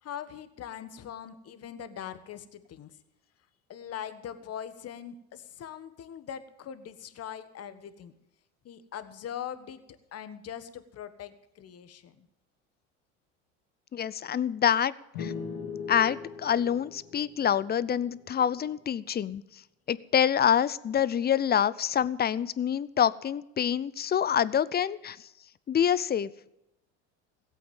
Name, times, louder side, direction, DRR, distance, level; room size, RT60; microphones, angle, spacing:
voice 1, 0.0-3.0 3.7-8.1 8.6-12.3, left 9 dB, 45° left, 12 dB, 1.4 m, -41 dB
voice 2, 13.9-14.9 15.2-15.3 15.9-19.4 19.9-25.2 25.7-26.3, left 9 dB, 30° left, 19 dB, 0.6 m, -26 dB
sound 1, 15.1-18.7, left 5 dB, 75° left, 2.4 m, -40 dB
16.0 x 8.5 x 7.3 m, 0.86 s
hypercardioid pair, 80°, 34 cm